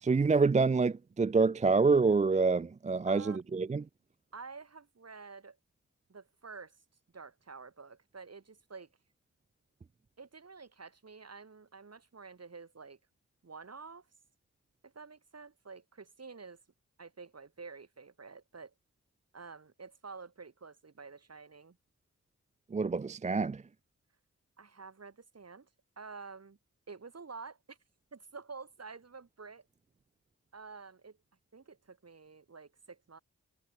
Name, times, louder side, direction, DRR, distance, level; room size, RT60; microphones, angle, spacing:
voice 1, 0.0-3.8 22.7-23.6, right 4 dB, 25° right, 0.4 m, -27 dB
voice 2, 3.0-3.6 4.3-5.6 6.1-6.7 7.1-8.9 10.2-13.0 13.4-14.1 14.8-16.6 17.0-18.7 19.3-21.8 24.6-25.7 26.0-26.6 26.9-27.8 28.1-29.6 30.5-31.2 31.5-33.2, right 4 dB, 55° right, 3.3 m, -49 dB
cardioid pair, 50°, 31 cm